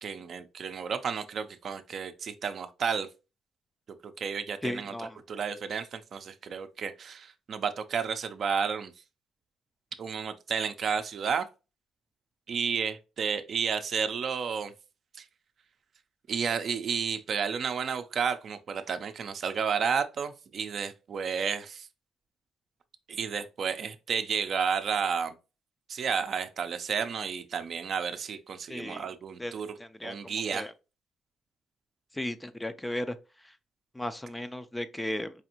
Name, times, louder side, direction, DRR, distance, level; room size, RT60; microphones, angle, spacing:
voice 1, 0.0-3.1 4.0-8.9 10.0-11.5 12.5-14.7 15.2-15.3 16.3-21.9 23.1-25.3 25.9-29.7 30.0-30.7, right 6 dB, 55° right, 0.5 m, -32 dB
voice 2, 4.6-5.2 28.7-29.1 29.4-29.5 29.8-30.7 32.1-33.2 33.9-35.3, left 1 dB, 10° left, 0.4 m, -35 dB
4.8 x 2.5 x 2.9 m
cardioid pair, 90°, 0 cm